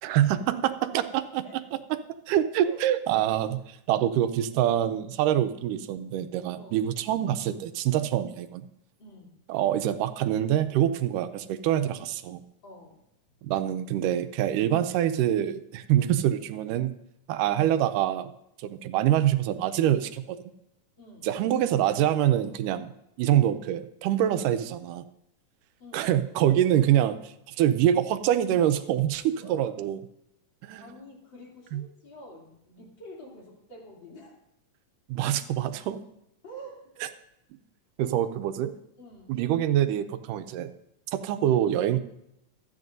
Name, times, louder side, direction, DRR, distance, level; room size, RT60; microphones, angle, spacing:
voice 1, 0.0-2.0 2.3-8.7 9.5-12.4 13.4-16.9 17.3-18.3 18.6-20.4 21.2-22.9 23.2-25.0 25.9-30.0 30.6-31.0 31.7-31.8 35.1-36.0 38.0-38.7 39.3-40.7 41.1-42.0, right 11 dB, 85° right, 10 dB, 2.2 m, -25 dB
voice 2, 9.0-9.4 12.6-13.0 21.0-21.3 25.8-26.1 29.3-29.7 30.8-34.4 36.4-37.1 38.0-38.2 39.0-39.4, right 1 dB, 35° left, -3 dB, 3.5 m, -47 dB
25.5 x 9.9 x 2.6 m, 0.81 s
omnidirectional pair, 3.8 m